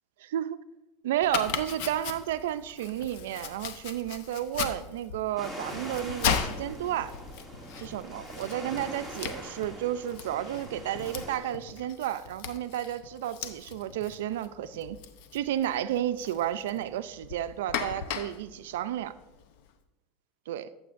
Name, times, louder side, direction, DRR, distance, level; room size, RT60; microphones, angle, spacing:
voice 1, 0.2-0.6 1.0-7.1 7.8-15.0 15.3-19.1 20.5-20.7, right 12 dB, 85° right, 12 dB, 0.4 m, -32 dB
Domestic sounds home sounds, 1.2-19.7, left 7 dB, 70° left, 0.7 m, -38 dB
sound 1, 5.4-11.4, equal, 20° left, 2.3 m, -43 dB
14.0 x 7.1 x 2.6 m, 0.95 s
supercardioid pair, 115°, 0 cm